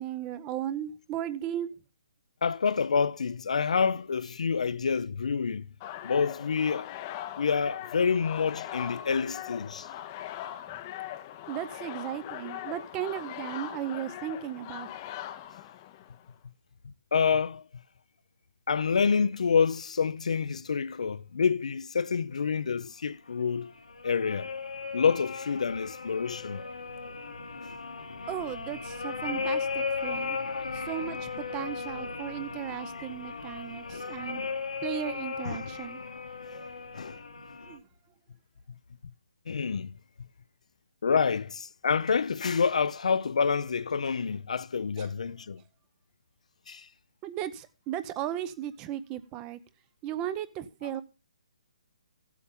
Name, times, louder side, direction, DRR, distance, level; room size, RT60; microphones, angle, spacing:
voice 1, 0.0-1.7 10.7-10.8 11.5-14.9 28.3-30.4 30.7-34.5 34.8-36.0 37.6-37.8 45.0-45.1 47.2-49.6 50.0-51.0, right 11 dB, 20° right, 0.6 m, -36 dB
voice 2, 2.4-5.7 6.0-6.9 7.4-9.9 17.1-17.6 18.7-23.7 24.0-24.5 24.9-26.6 33.9-34.1 35.4-35.7 36.9-37.2 39.5-39.9 41.0-45.6 46.7-46.9, left 5 dB, 70° left, 0.6 m, -27 dB
sound 1, 5.8-16.3, left 12 dB, 25° left, 0.6 m, -40 dB
sound 2, 23.4-37.8, left 4 dB, 90° left, 1.7 m, -36 dB
14.0 x 8.4 x 3.7 m
hypercardioid pair, 160°, 4 cm